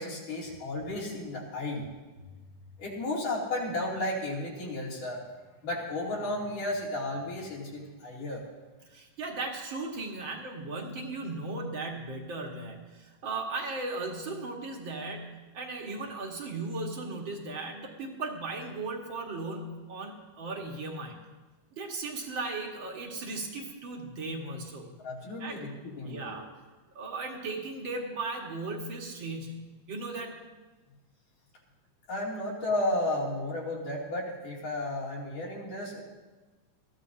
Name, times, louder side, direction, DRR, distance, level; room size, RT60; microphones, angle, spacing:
voice 1, 0.0-1.8 2.8-5.2 5.6-8.4 25.0-26.4 32.1-36.0, left 1 dB, 75° left, -5 dB, 4.6 m, -33 dB
voice 2, 8.9-21.2 21.7-24.9 25.4-25.6 26.0-26.5 26.9-30.4, right 3 dB, 45° right, 0 dB, 2.0 m, -37 dB
21.0 x 14.5 x 2.8 m, 1.2 s
omnidirectional pair, 3.7 m